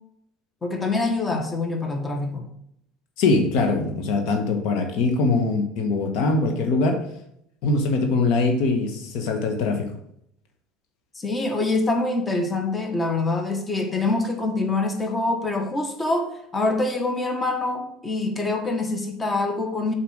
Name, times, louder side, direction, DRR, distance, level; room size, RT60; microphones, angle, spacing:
voice 1, 0.6-2.4 11.1-19.9, left 2 dB, 25° left, 4 dB, 1.6 m, -25 dB
voice 2, 3.2-7.0 7.6-9.9, left 3 dB, 65° left, 4 dB, 1.4 m, -22 dB
7.1 x 4.7 x 6.5 m, 0.74 s
hypercardioid pair, 75°, 0 cm